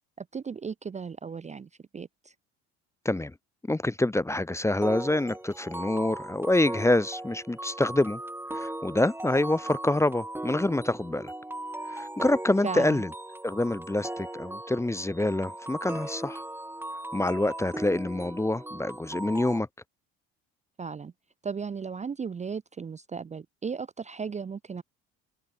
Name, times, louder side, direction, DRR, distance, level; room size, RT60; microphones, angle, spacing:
voice 1, 0.2-2.3 12.6-13.0 20.8-21.1 21.4-24.8, right 5 dB, 20° right, 0.6 m, -36 dB
voice 2, 3.7-8.2 8.5-11.3 11.9-13.1 13.4-16.4 17.1-19.7, left 2 dB, 10° left, 0.8 m, -26 dB
sound 1, 4.8-19.6, right 1 dB, 5° right, 2.9 m, -38 dB
supercardioid pair, 75°, 31 cm